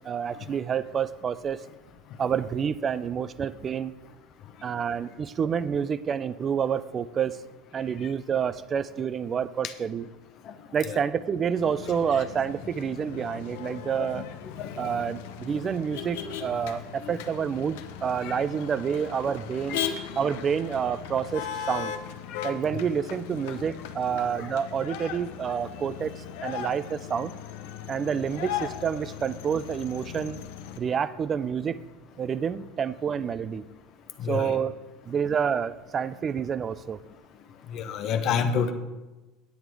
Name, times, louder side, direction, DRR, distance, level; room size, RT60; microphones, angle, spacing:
voice 1, 0.0-1.6 2.2-3.9 4.6-7.4 7.7-10.1 10.7-14.2 14.8-19.8 20.2-21.9 22.4-27.3 27.9-30.4 30.8-31.8 32.2-33.6 34.3-34.7 35.1-37.0, right 7 dB, 30° right, 16 dB, 0.4 m, -28 dB
Motor vehicle (road), 11.6-30.8, left 9 dB, 85° left, 0.8 m, -38 dB
voice 2, 14.1-14.9 18.2-18.4 19.7-19.8 22.3-22.4 22.7-22.8 24.4-24.5 34.2-34.6 37.7-38.7, left 6 dB, 50° left, 7 dB, 0.8 m, -29 dB
9.3 x 8.5 x 4.7 m, 1.1 s
supercardioid pair, 125°, 0 cm